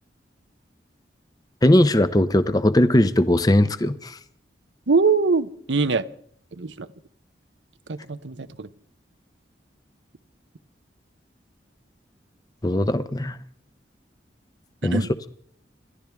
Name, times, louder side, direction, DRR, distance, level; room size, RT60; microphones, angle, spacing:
voice 1, 1.6-4.2 12.6-13.4 14.8-15.0, left 1 dB, 20° left, 0.7 m, -19 dB
voice 2, 4.9-6.1 6.5-6.9 7.9-8.7 14.8-15.1, right 4 dB, 85° right, 0.9 m, -23 dB
28.0 x 13.5 x 3.5 m
head